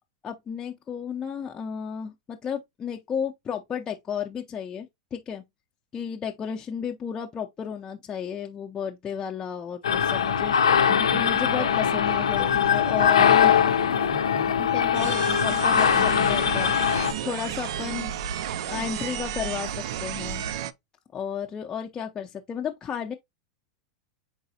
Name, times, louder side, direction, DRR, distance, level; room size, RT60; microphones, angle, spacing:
voice 1, 0.2-5.4 5.9-13.5 14.6-16.8 17.2-18.1 18.6-20.4 21.1-23.1, left 7 dB, 25° left, 0.5 m, -33 dB
sound 1, 9.8-17.1, left 8 dB, 90° left, 0.6 m, -21 dB
sound 2, 10.9-16.5, right 5 dB, 35° right, 0.7 m, -40 dB
sound 3, 14.9-20.7, right 9 dB, 70° right, 0.4 m, -32 dB
4.6 x 4.0 x 2.7 m
hypercardioid pair, 105°, 3 cm